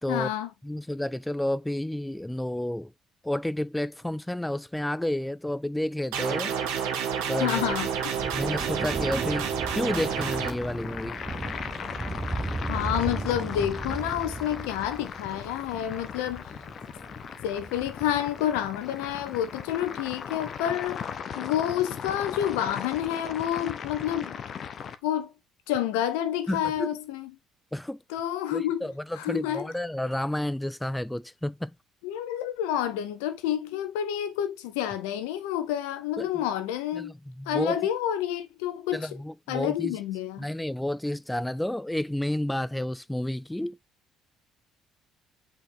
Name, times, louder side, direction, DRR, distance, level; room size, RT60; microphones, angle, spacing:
voice 1, 0.1-0.5 7.4-7.9 12.7-16.5 17.4-21.0 21.3-24.4 25.0-25.3 25.7-27.3 28.1-28.8 29.2-29.7 32.0-37.1 37.5-39.1 39.5-40.5, left 11 dB, 70° left, 1.2 m, -29 dB
voice 2, 0.6-2.9 3.2-6.6 7.3-7.7 8.3-9.5 9.7-11.2 26.5-26.9 27.7-28.0 28.5-31.7 36.2-36.3 36.9-37.8 38.9-39.9 40.4-43.8, left 1 dB, 5° left, 0.4 m, -30 dB
sound 1, 6.1-10.5, right 7 dB, 65° right, 1.7 m, -29 dB
Thunder, 7.1-20.0 20.9-21.0, right 2 dB, 20° right, 1.2 m, -37 dB
sound 2, 9.8-24.9, left 7 dB, 45° left, 1.2 m, -38 dB
8.4 x 5.0 x 3.6 m
figure-of-eight pair, 50°, 0 cm